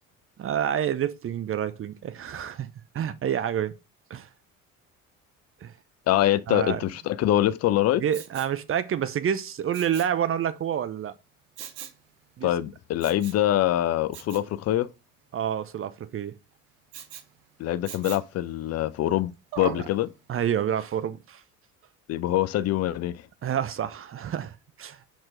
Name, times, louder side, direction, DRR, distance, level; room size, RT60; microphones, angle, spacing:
voice 1, 0.4-2.7 2.9-3.7 4.1-4.3 5.6-5.7 6.5-6.8 8.0-11.1 12.4-12.5 15.3-16.4 19.8-19.9 20.3-21.4 23.4-25.1, right 9 dB, 30° right, 0.7 m, -28 dB
voice 2, 6.1-8.0 12.4-14.9 17.6-20.1 22.1-23.2, left 13 dB, 40° left, 0.6 m, -24 dB
Respiratory sounds, 8.1-8.6 9.7-10.2 11.6-12.0 13.0-13.5 14.1-14.5 16.9-17.3 17.9-18.4 19.5-19.9 20.4-20.5, right 10 dB, 60° right, 1.0 m, -39 dB
6.1 x 4.4 x 4.9 m
figure-of-eight pair, 55°, 41 cm